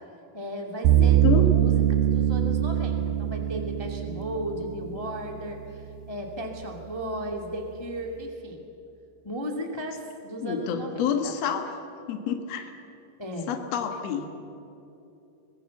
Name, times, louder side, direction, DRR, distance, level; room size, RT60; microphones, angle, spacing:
voice 1, 0.3-8.6 9.2-11.3 13.2-13.5, equal, 10° left, 1 dB, 1.4 m, -35 dB
sound 1, 0.8-6.0, right 12 dB, 85° right, 2.5 m, -23 dB
voice 2, 0.9-1.4 10.4-11.6 12.1-12.7 13.5-14.3, left 8 dB, 55° left, 5 dB, 2.2 m, -28 dB
24.5 x 20.5 x 7.2 m, 2.8 s
omnidirectional pair, 4.1 m